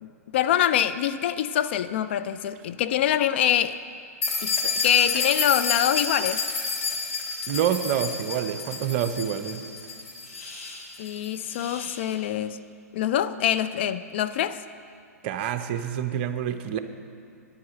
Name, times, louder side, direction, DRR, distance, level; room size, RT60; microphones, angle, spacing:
voice 1, 0.0-3.8 4.4-6.4 11.0-12.6 12.9-14.6, left 11 dB, 45° left, 12 dB, 0.4 m, -25 dB
sound 1, 4.2-12.0, left 4 dB, 60° left, 2.6 m, -30 dB
voice 2, 7.5-9.6 15.2-16.8, right 9 dB, 40° right, 9 dB, 0.7 m, -27 dB
9.9 x 8.4 x 7.7 m, 2.4 s
figure-of-eight pair, 110°, 9 cm